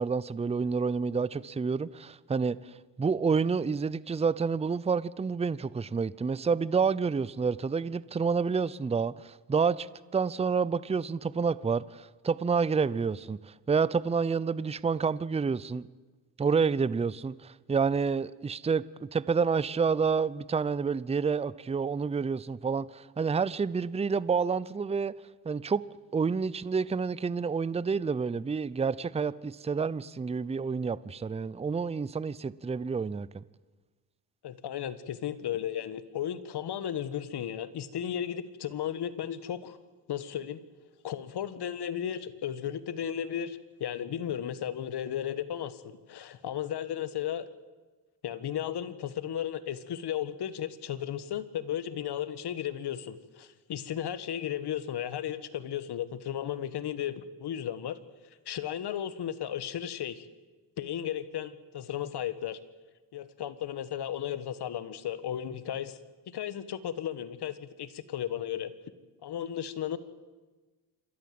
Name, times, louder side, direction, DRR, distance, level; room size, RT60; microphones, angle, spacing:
voice 1, 0.0-9.9 10.1-15.9 16.4-25.1 25.4-25.8 26.1-33.4, right 5 dB, 15° right, 0.5 m, -29 dB
voice 2, 34.4-39.8 40.1-40.6 41.0-47.5 48.2-58.0 58.5-60.3 60.8-62.6 63.1-66.0 66.3-68.7 69.2-70.0, left 10 dB, 65° left, 1.5 m, -35 dB
27.0 x 13.0 x 7.7 m
cardioid pair, 80°, 43 cm